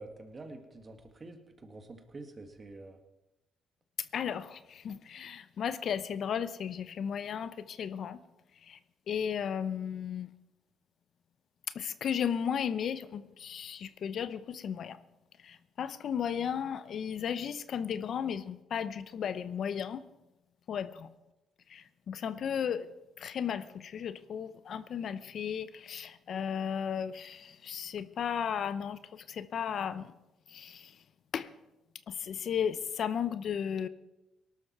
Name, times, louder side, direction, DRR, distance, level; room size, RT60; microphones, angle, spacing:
voice 1, 0.0-3.0, right 2 dB, 35° right, 5 dB, 2.1 m, -47 dB
voice 2, 4.0-8.2 8.6-8.8 9.1-10.3 11.7-15.0 15.4-20.0 20.7-21.1 21.7-22.9 23.2-30.1 30.5-31.0 31.3-31.5 32.1-33.9, left 8 dB, 60° left, 14 dB, 0.7 m, -35 dB
18.0 x 12.5 x 4.7 m, 0.98 s
cardioid pair, 90°, 0 cm